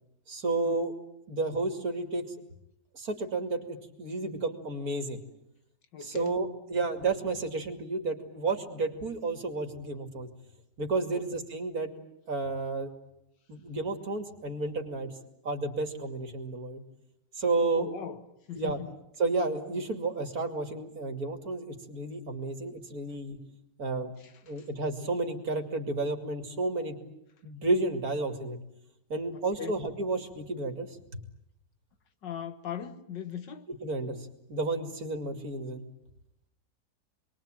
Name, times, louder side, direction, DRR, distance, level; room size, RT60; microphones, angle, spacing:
voice 1, 0.3-0.9 1.3-2.2 2.9-5.2 6.0-10.3 10.8-11.9 12.3-12.9 13.5-15.1 15.4-16.8 17.4-17.9 18.6-18.8 19.2-23.4 23.8-24.1 24.4-27.0 27.4-28.6 29.1-30.9 33.8-35.8, right 3 dB, 55° right, 3.1 m, -31 dB
voice 2, 5.9-6.4 11.1-11.2 17.7-18.2 18.5-18.9 24.2-24.7 29.6-29.8 32.2-33.7, left 8 dB, 80° left, 2.1 m, -39 dB
28.5 x 22.0 x 9.1 m
omnidirectional pair, 1.9 m